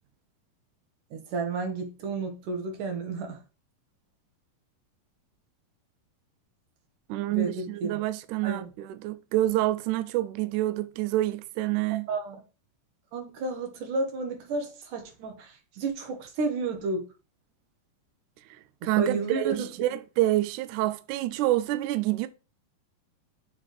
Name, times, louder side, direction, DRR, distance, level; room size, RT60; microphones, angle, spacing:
voice 1, 1.1-3.4 7.3-8.0 8.4-8.6 12.1-12.4 13.1-14.7 14.9-15.3 15.8-17.0 19.0-19.7, right 3 dB, 65° right, 3.0 m, -31 dB
voice 2, 7.1-12.1 18.8-22.3, right 15 dB, 85° right, 1.8 m, -27 dB
7.2 x 3.7 x 4.7 m
omnidirectional pair, 4.1 m